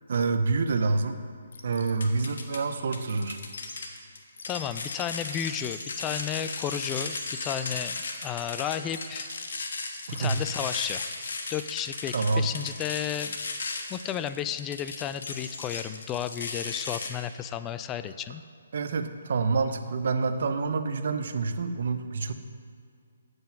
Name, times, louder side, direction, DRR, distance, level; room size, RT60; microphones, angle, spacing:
voice 1, 0.1-1.2 1.6-3.4 10.1-10.4 12.1-12.5 18.7-22.3, right 4 dB, 60° right, 9 dB, 0.7 m, -27 dB
sound 1, 1.5-2.6 2.9-17.1, left 4 dB, 65° left, 1.2 m, -36 dB
voice 2, 4.5-9.3 10.2-11.0 11.5-13.4 13.9-18.4, left 10 dB, 15° left, 12 dB, 0.3 m, -33 dB
7.8 x 7.5 x 5.8 m, 2.2 s
hypercardioid pair, 155°, 0 cm